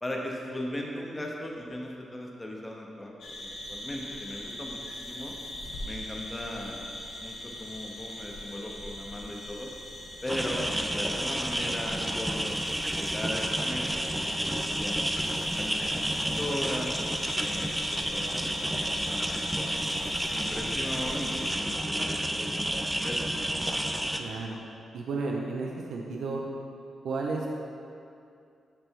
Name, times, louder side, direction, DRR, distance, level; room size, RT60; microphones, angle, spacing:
voice 1, 0.0-3.1 3.4-5.4 5.8-6.8 7.2-9.7 10.2-12.6 13.0-15.0 15.6-15.8 16.1-16.9 17.3-18.5 18.9-19.4 20.3-23.2, left 1 dB, 15° left, -1 dB, 0.8 m, -38 dB
sound 1, 3.2-21.5, left 1 dB, 75° left, 1.2 m, -41 dB
sound 2, 10.3-24.2, right 1 dB, 5° right, 0.3 m, -30 dB
voice 2, 24.2-24.6 24.9-26.4 27.0-27.5, right 3 dB, 75° right, -1 dB, 0.6 m, -32 dB
10.0 x 3.4 x 4.5 m, 2.5 s
wide cardioid pair, 170°, 0 cm